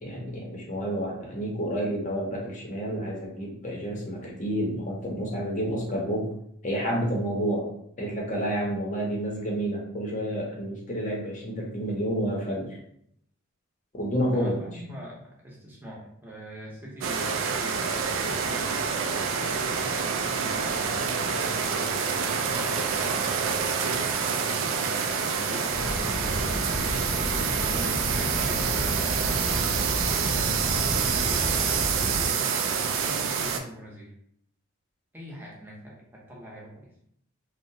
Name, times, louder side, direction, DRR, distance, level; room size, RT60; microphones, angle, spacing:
voice 1, 0.0-6.3 6.6-7.7 8.0-12.8 13.9-14.6, equal, 35° left, -2 dB, 0.6 m, -29 dB
voice 2, 14.3-18.7 19.4-23.3 23.8-24.1 24.6-26.8 27.3-29.3 30.0-32.6 33.0-34.1 35.1-36.9, equal, 10° right, -5 dB, 0.6 m, -43 dB
sound 1, 17.0-33.6, right 6 dB, 70° right, 0.3 m, -27 dB
sound 2, 25.7-32.3, equal, 80° left, 0.7 m, -32 dB
2.7 x 2.0 x 2.6 m, 0.71 s
head